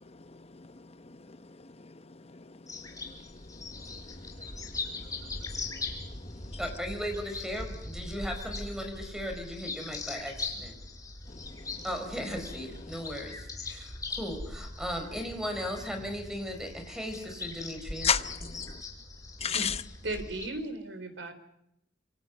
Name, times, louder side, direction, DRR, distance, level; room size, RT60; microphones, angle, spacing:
voice 1, 0.0-6.6 11.3-11.8 18.0-18.8 19.4-19.8, left 7 dB, 35° left, 0.9 m, -37 dB
sound 1, 2.7-20.5, left 3 dB, 20° left, 4.2 m, -40 dB
voice 2, 6.6-10.8 11.8-18.1, equal, 5° right, 4.8 m, -37 dB
voice 3, 20.0-21.3, right 2 dB, 85° right, 3.6 m, -36 dB
26.5 x 25.5 x 5.4 m
head